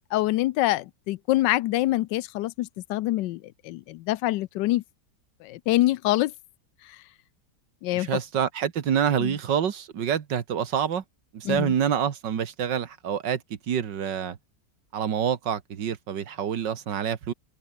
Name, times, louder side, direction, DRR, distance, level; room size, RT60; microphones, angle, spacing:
voice 1, 0.1-4.8 5.4-6.3 7.8-8.1 9.2-9.3 11.4-11.7, left 16 dB, 90° left, 1.3 m, -25 dB
voice 2, 7.9-11.0 11.3-13.4 13.7-14.4 14.9-17.3, right 8 dB, 90° right, 2.1 m, -27 dB
omnidirectional pair, 1.9 m